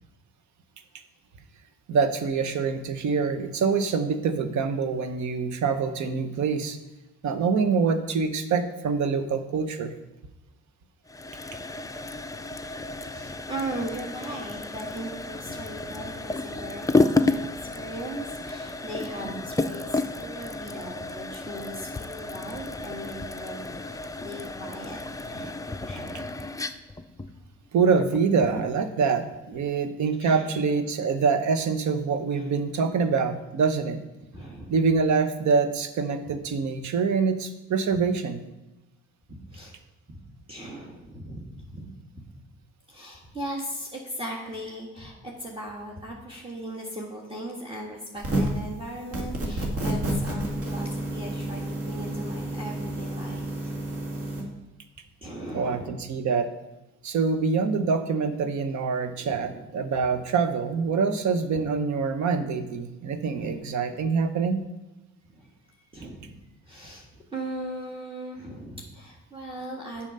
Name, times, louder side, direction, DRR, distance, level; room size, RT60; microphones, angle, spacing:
voice 1, 1.9-6.8 7.2-9.9 27.7-34.0 34.7-38.4 55.5-56.5 57.0-64.6, right 5 dB, 70° right, 10 dB, 1.0 m, -25 dB
sound 1, 11.1-28.8, left 2 dB, 10° left, 0.5 m, -31 dB
voice 2, 13.0-25.5 25.8-26.3 30.2-30.6 32.3-32.5 34.3-34.7 36.3-36.7 39.3-39.8 40.1-40.2 40.5-41.9 42.9-53.8 55.2-56.0 59.1-59.7 61.5-61.7 63.3-63.6 65.3-65.5 65.9-66.4 66.6-70.1, right 1 dB, 20° right, -2 dB, 1.7 m, -38 dB
sound 2, 48.2-48.6 49.1-54.4, right 1 dB, 50° right, 2.1 m, -30 dB
7.4 x 6.2 x 5.5 m, 1.0 s
cardioid pair, 90°, 30 cm